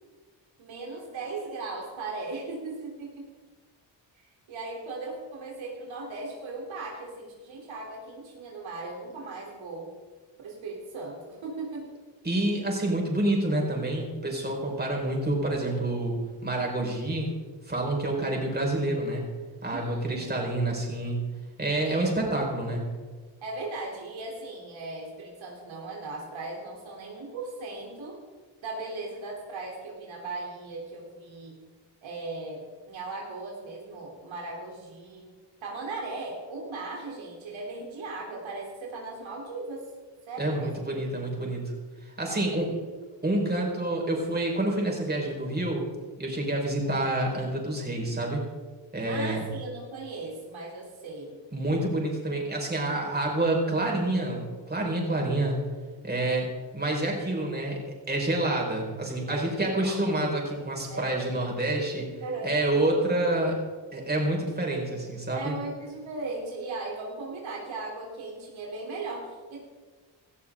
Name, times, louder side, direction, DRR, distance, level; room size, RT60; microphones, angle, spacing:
voice 1, 0.6-3.3 4.5-9.9 10.4-11.8 19.6-20.1 21.8-22.1 23.4-28.2 28.6-31.6 32.0-35.3 35.6-39.8 40.3-40.8 42.3-42.9 49.1-51.4 59.3-60.0 60.9-61.2 62.2-62.5 65.3-69.6, right 3 dB, 85° right, -2 dB, 3.6 m, -37 dB
voice 2, 12.2-16.2 16.4-17.3 17.6-19.3 19.6-21.2 21.6-22.9 40.4-41.7 42.2-42.7 43.2-45.8 46.2-48.4 48.9-49.4 51.5-55.5 56.0-56.5 56.7-62.1 62.4-63.6 63.9-65.5, right 1 dB, 20° right, -1 dB, 4.9 m, -28 dB
18.5 x 13.5 x 3.8 m, 1.4 s
cardioid pair, 85°, 45 cm